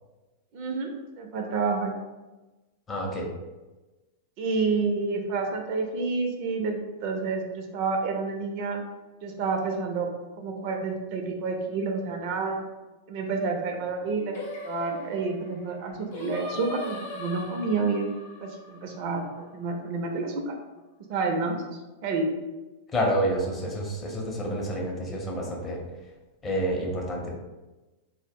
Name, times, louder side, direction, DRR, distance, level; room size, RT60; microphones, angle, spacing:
voice 1, 0.5-0.9 1.2-1.9 4.4-8.8 9.2-10.1 10.4-12.6 13.1-18.1 18.4-20.6 21.1-22.3, right 4 dB, 55° right, 3 dB, 0.4 m, -29 dB
voice 2, 2.9-3.3 22.9-25.8 26.4-27.3, equal, 25° left, -1 dB, 0.6 m, -28 dB
Singing, 14.3-19.6, left 1 dB, 65° left, 0.6 m, -40 dB
2.0 x 2.0 x 3.5 m, 1.1 s
hypercardioid pair, 125°, 0 cm